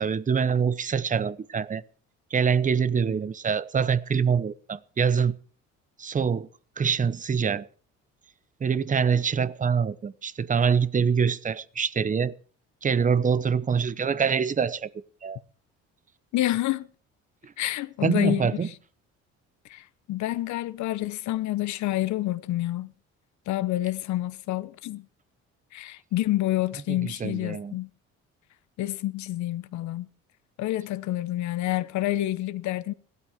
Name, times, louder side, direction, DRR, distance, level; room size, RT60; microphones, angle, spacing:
voice 1, 0.0-1.8 2.3-5.3 6.0-6.5 6.8-7.7 8.6-12.3 12.8-14.9 15.2-15.4 17.4-17.5 18.0-18.7 27.0-27.8, right 6 dB, 25° right, 0.8 m, -25 dB
voice 2, 16.3-16.9 17.6-18.6 19.7-22.9 23.5-25.1 25.7-27.9 28.8-30.1 30.6-32.9, left 15 dB, 75° left, 1.0 m, -28 dB
17.0 x 12.5 x 5.0 m
cardioid pair, 95°, 29 cm